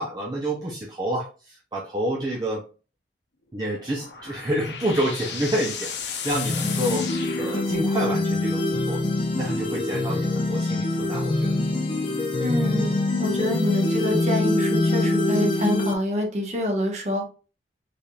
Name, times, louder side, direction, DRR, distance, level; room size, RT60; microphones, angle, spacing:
voice 1, 0.0-2.6 3.5-9.0 9.4-11.5, right 1 dB, 25° right, -3 dB, 0.6 m, -28 dB
sound 1, 3.6-8.2, left 7 dB, 80° left, 0.7 m, -35 dB
sound 2, 6.3-15.9, left 2 dB, 30° left, 0.6 m, -24 dB
voice 2, 12.4-17.3, left 1 dB, 40° right, 2 dB, 1.0 m, -27 dB
4.1 x 3.3 x 2.3 m, 0.34 s
head